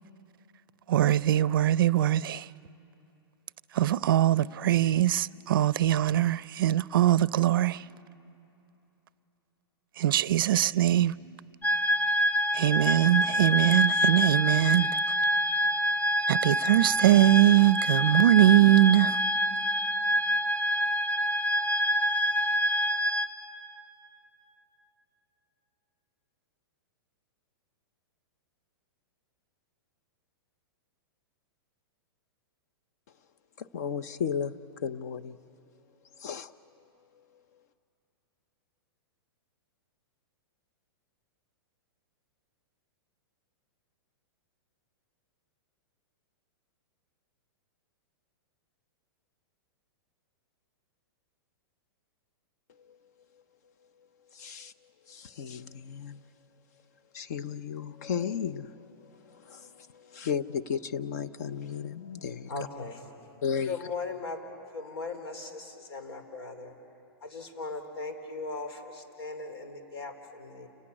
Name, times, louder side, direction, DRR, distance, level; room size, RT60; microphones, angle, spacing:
voice 1, 0.9-2.5 3.7-7.8 10.0-11.1 12.5-14.9 16.3-19.2, right 13 dB, 60° right, 0.5 m, -22 dB
sound 1, 11.6-23.2, equal, 15° left, 1.1 m, -26 dB
voice 2, 33.6-34.5 34.8-35.4 36.2-36.5 37.1-37.4 52.7-53.0 53.3-53.4 54.3-56.2 57.1-62.5 63.4-63.7, left 7 dB, 40° left, 0.7 m, -35 dB
voice 3, 62.5-63.0 63.7-64.4 64.7-66.7 67.2-70.7, left 3 dB, 80° left, 3.8 m, -38 dB
29.5 x 18.0 x 9.8 m
supercardioid pair, 175°, 13 cm